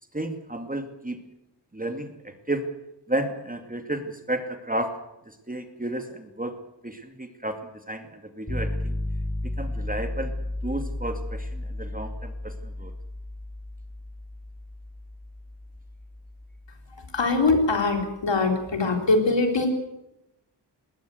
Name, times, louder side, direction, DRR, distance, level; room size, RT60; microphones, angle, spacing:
voice 1, 0.1-1.2 1.7-2.6 3.1-5.0 5.3-8.9 9.4-10.3 10.6-12.9, right 1 dB, 20° right, 6 dB, 2.5 m, -32 dB
sound 1, 8.5-18.4, left 1 dB, 30° left, 3.5 m, -34 dB
voice 2, 16.9-19.7, left 3 dB, 90° left, 4 dB, 4.2 m, -23 dB
20.0 x 19.0 x 7.9 m, 0.88 s
wide cardioid pair, 70°, 42 cm